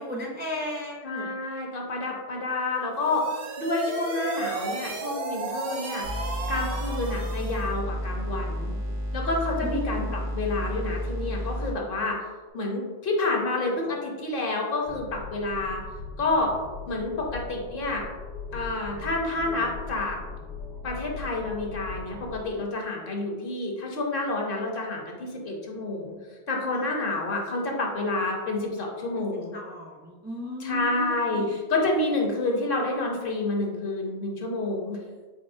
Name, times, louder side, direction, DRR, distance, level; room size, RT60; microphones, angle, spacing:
voice 1, 0.0-1.3 9.6-10.1 26.7-26.9 29.2-29.3 29.5-31.5, left 1 dB, 15° right, -2 dB, 0.4 m, -35 dB
voice 2, 1.0-3.3 3.6-6.0 6.5-8.8 9.1-10.1 10.3-12.2 12.5-15.8 16.2-16.5 16.9-18.0 18.5-20.2 20.8-26.2 26.5-29.6 30.6-35.0, left 2 dB, 65° left, 0 dB, 0.9 m, -29 dB
sound 1, 2.9-7.7, right 3 dB, 65° right, 0.8 m, -34 dB
sound 2, 6.0-11.8, equal, 90° right, 1.0 m, -31 dB
sound 3, 14.9-22.5, left 4 dB, 90° left, 1.5 m, -40 dB
4.1 x 4.1 x 2.6 m, 1.4 s
omnidirectional pair, 1.0 m